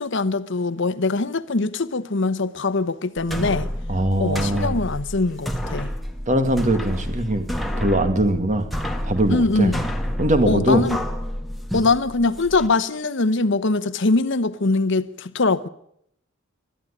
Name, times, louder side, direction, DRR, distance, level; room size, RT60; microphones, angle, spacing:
voice 1, 0.0-3.7 4.2-5.9 9.3-9.9 10.5-11.0 11.7-15.7, left 3 dB, 65° left, 1.0 m, -22 dB
sound 1, 3.2-12.7, equal, ahead, 1.7 m, -29 dB
voice 2, 3.9-4.8 6.3-7.5 7.8-8.7 9.0-9.7 10.2-10.8, right 1 dB, 40° right, 2.3 m, -21 dB
20.5 x 13.5 x 10.0 m
head